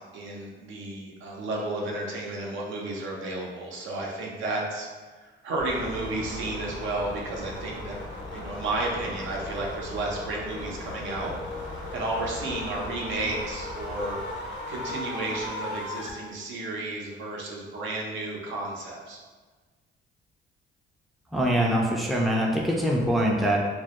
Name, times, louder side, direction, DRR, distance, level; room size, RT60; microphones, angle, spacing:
voice 1, 0.1-4.9 5.2-8.0 8.3-11.3 11.9-14.2 14.7-19.2, right 2 dB, 75° right, -1 dB, 0.5 m, -32 dB
sound 1, 5.6-16.1, left 2 dB, 65° left, 0.5 m, -37 dB
voice 2, 21.3-23.6, equal, ahead, -2 dB, 0.3 m, -23 dB
2.2 x 2.0 x 2.8 m, 1.4 s
cardioid pair, 90°, 20 cm